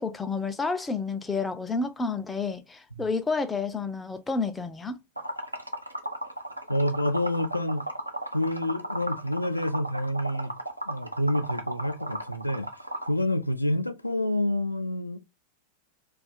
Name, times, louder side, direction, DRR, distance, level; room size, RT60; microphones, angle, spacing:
voice 1, 0.0-5.0, left 4 dB, 10° left, 0.4 m, -30 dB
Liquid, 5.2-13.1, right 1 dB, 85° right, 0.5 m, -35 dB
voice 2, 6.7-7.8 8.3-10.5 10.9-12.7 13.0-15.2, left 1 dB, 85° left, 0.3 m, -28 dB
2.4 x 2.4 x 3.9 m
figure-of-eight pair, 90°, 0 cm